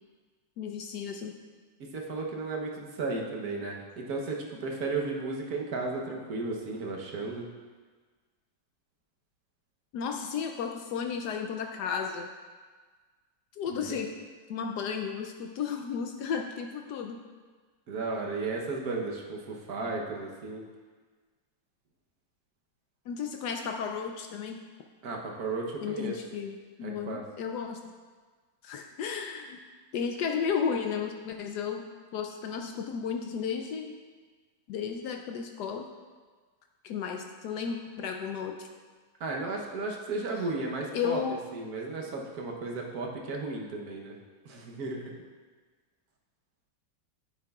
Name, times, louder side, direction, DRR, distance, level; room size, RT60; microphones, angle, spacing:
voice 1, 0.6-1.3 9.9-12.3 13.6-14.1 14.5-17.2 23.1-24.6 25.8-27.8 28.6-29.6 29.9-31.8 32.1-33.9 34.7-35.9 36.8-38.7 40.9-41.4, left 6 dB, 75° left, 3 dB, 0.9 m, -33 dB
voice 2, 1.8-7.5 13.7-14.0 17.9-20.6 25.0-26.2 26.8-27.2 39.2-41.2 41.5-44.1 44.4-45.1, right 3 dB, 55° right, -1 dB, 1.2 m, -34 dB
9.4 x 8.7 x 2.3 m, 1.4 s
omnidirectional pair, 2.3 m